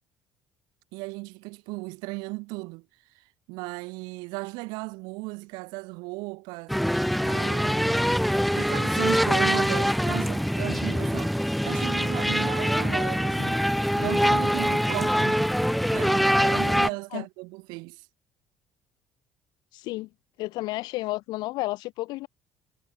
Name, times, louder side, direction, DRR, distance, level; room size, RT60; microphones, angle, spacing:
voice 1, 0.9-2.8 3.5-6.7 7.2-8.0 8.5-11.3 11.6-13.6 14.0-15.5 15.9-18.0, right 27 dB, 75° right, 1.6 m, -35 dB
sound 1, 6.7-16.9, equal, ahead, 0.8 m, -24 dB
voice 2, 19.7-20.1 20.4-22.3, left 19 dB, 70° left, 2.5 m, -31 dB
hypercardioid pair, 65°, 7 cm